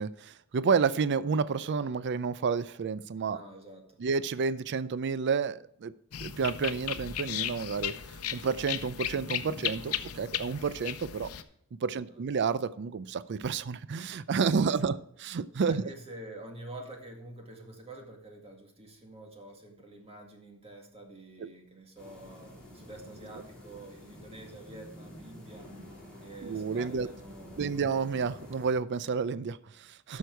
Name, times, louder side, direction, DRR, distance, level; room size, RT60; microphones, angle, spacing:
voice 1, 0.0-3.4 4.0-5.9 6.2-7.9 8.3-11.3 11.8-15.0 15.2-15.9 21.4-21.5 26.4-27.1 27.6-30.2, right 5 dB, 55° right, 16 dB, 0.4 m, -30 dB
voice 2, 3.3-4.0 11.9-12.2 14.7-14.9 15.6-25.7 26.2-27.7 30.1-30.2, right 1 dB, 30° right, 2 dB, 2.0 m, -47 dB
sound 1, 6.1-11.4, left 10 dB, 80° left, 0.7 m, -36 dB
sound 2, 22.0-28.7, left 1 dB, 5° left, 4.0 m, -49 dB
11.5 x 6.5 x 4.5 m, 0.69 s
head